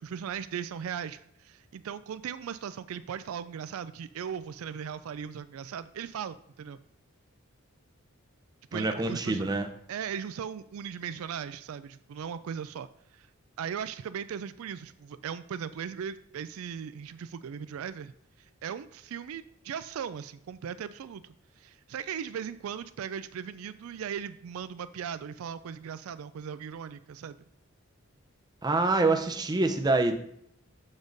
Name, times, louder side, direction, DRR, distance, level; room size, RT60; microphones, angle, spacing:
voice 1, 0.0-6.8 8.7-9.4 9.9-12.9 13.1-13.3 13.6-18.1 18.6-27.4, right 7 dB, 75° right, 14 dB, 0.3 m, -38 dB
voice 2, 8.7-9.7 28.6-30.2, right 2 dB, 20° right, 6 dB, 0.6 m, -26 dB
7.1 x 5.3 x 3.9 m, 0.72 s
head